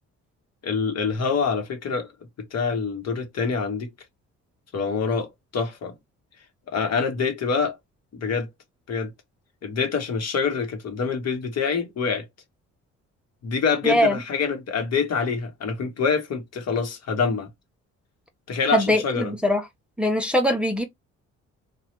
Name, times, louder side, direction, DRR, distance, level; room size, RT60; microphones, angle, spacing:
voice 1, 0.6-2.1 2.4-3.9 4.7-6.0 6.7-7.8 8.1-8.5 8.9-9.1 9.6-12.3 13.4-17.5 18.5-19.3, left 5 dB, 55° left, 1.0 m, -26 dB
voice 2, 13.8-14.1 18.7-19.6 20.0-20.8, equal, 5° right, 0.6 m, -21 dB
3.1 x 2.2 x 2.9 m
cardioid pair, 90°, 30 cm